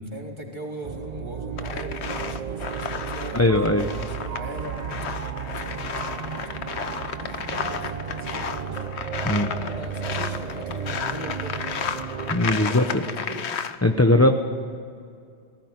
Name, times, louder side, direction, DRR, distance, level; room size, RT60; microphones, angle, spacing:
voice 1, 0.1-3.5 3.8-4.9 5.6-5.9 6.1-8.9 9.2-12.0 12.6-13.5, equal, 25° right, -1 dB, 3.4 m, -39 dB
sound 1, 0.8-12.7, right 7 dB, 45° right, 0.7 m, -33 dB
sound 2, 1.6-13.8, left 6 dB, 85° left, 1.2 m, -33 dB
voice 2, 3.3-3.9 9.2-9.5 12.3-13.0 13.8-14.3, left 1 dB, 15° left, 5 dB, 0.8 m, -19 dB
19.0 x 17.5 x 9.6 m, 2.3 s
omnidirectional pair, 1.1 m